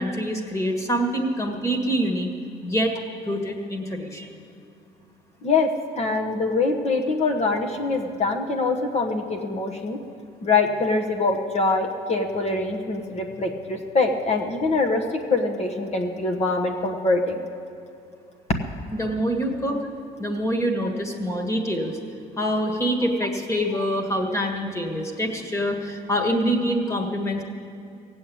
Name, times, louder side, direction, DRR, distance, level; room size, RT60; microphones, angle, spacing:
voice 1, 0.0-2.3 2.6-2.9 3.3-4.3 18.9-19.8 20.2-22.0 22.4-27.4, equal, 15° left, 3 dB, 1.8 m, -25 dB
voice 2, 5.4-10.0 10.4-17.4, left 3 dB, 40° left, 3 dB, 1.2 m, -24 dB
16.5 x 7.8 x 8.7 m, 2.4 s
cardioid pair, 110°, 17 cm